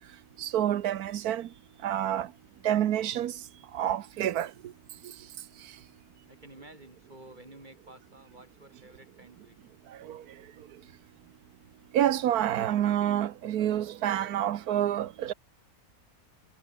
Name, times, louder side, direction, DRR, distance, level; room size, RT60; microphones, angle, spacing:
voice 1, 0.4-1.5 1.8-2.3 2.6-3.3 3.7-4.5 10.0-10.2 11.9-15.3, right 11 dB, 85° right, 1.4 m, -28 dB
voice 2, 6.3-9.6, right 1 dB, 30° right, 5.3 m, -52 dB
omnidirectional pair, 1.6 m